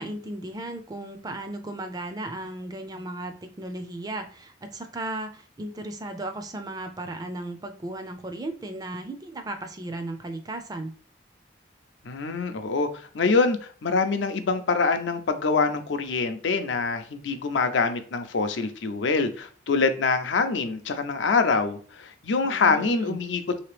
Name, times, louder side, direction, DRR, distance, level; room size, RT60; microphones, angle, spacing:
voice 1, 0.0-10.9 22.4-23.2, right 2 dB, 20° right, 0.4 m, -35 dB
voice 2, 12.0-23.6, left 4 dB, 85° left, 0.5 m, -25 dB
3.3 x 2.8 x 3.2 m
head